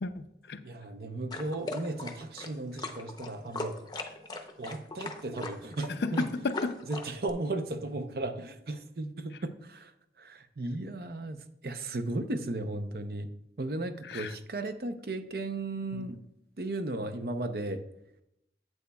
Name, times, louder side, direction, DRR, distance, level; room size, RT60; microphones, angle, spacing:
voice 1, 0.0-0.6 6.0-6.7 14.1-14.3 15.9-16.0, left 3 dB, 70° left, 10 dB, 0.5 m, -33 dB
voice 2, 0.6-3.8 4.6-6.3 6.9-9.9 10.2-11.4 11.6-13.3 13.6-16.2 16.6-17.8, right 2 dB, 60° right, 8 dB, 0.7 m, -35 dB
sound 1, 1.3-7.3, left 2 dB, 25° left, 0.7 m, -39 dB
10.5 x 8.4 x 2.3 m, 0.80 s
head